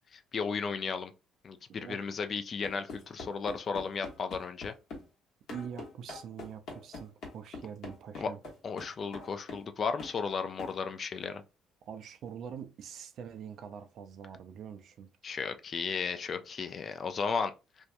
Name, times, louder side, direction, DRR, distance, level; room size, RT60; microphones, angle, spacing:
voice 1, 0.1-1.1 1.4-4.7 8.2-8.3 8.6-11.4 15.2-17.5, left 5 dB, 45° left, 0.4 m, -34 dB
sound 1, 2.6-5.1 5.5-9.7 10.0-10.2 10.6-10.8, left 3 dB, 60° left, 1.0 m, -44 dB
voice 2, 5.5-8.4 11.8-15.1, right 7 dB, 60° right, 0.4 m, -44 dB
2.6 x 2.2 x 2.5 m
hypercardioid pair, 55°, 0 cm